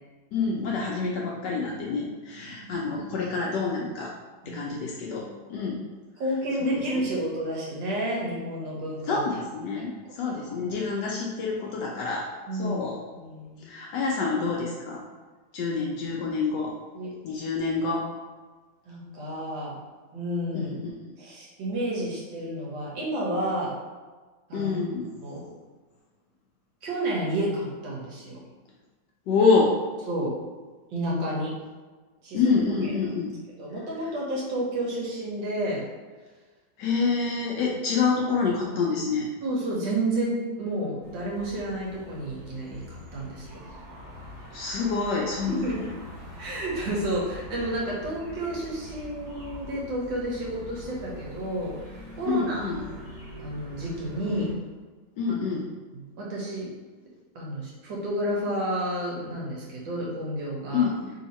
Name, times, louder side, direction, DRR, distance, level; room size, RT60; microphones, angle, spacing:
voice 1, 0.3-4.1 4.5-5.2 5.5-5.8 6.6-7.1 9.1-12.2 12.6-13.0 13.6-15.0 15.5-16.7 17.2-18.1 20.5-21.1 24.5-25.1 29.3-29.7 32.3-33.3 36.8-39.3 44.5-45.5 52.3-52.8 54.3-54.5 55.2-55.7 60.7-61.1, left 4 dB, 80° left, -3 dB, 1.2 m, -27 dB
voice 2, 6.2-9.2 10.3-10.4 12.5-12.9 13.1-13.6 16.9-17.1 18.9-19.8 20.1-20.7 21.2-23.8 24.5-24.7 25.2-25.4 26.8-28.4 30.1-30.4 30.9-31.5 32.2-32.5 32.8-32.9 33.6-35.8 39.4-43.6 45.4-45.8 46.4-51.8 52.2-53.0 53.4-54.5 55.3-55.6 55.9-56.7 57.3-60.9, right 1 dB, 90° right, -3 dB, 1.7 m, -30 dB
sound 1, 41.0-54.5, equal, 45° right, 1.2 m, -43 dB
3.5 x 2.8 x 4.2 m, 1.4 s
omnidirectional pair, 1.9 m